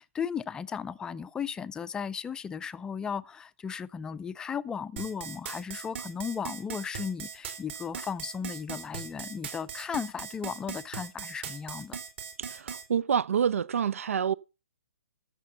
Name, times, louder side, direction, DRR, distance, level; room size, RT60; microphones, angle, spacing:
voice 1, 0.0-12.0, left 6 dB, 10° left, 0.5 m, -35 dB
sound 1, 5.0-12.8, right 7 dB, 45° right, 3.4 m, -39 dB
voice 2, 12.5-14.3, right 7 dB, 65° right, 0.5 m, -27 dB
13.5 x 6.8 x 5.6 m
hypercardioid pair, 135°, 8 cm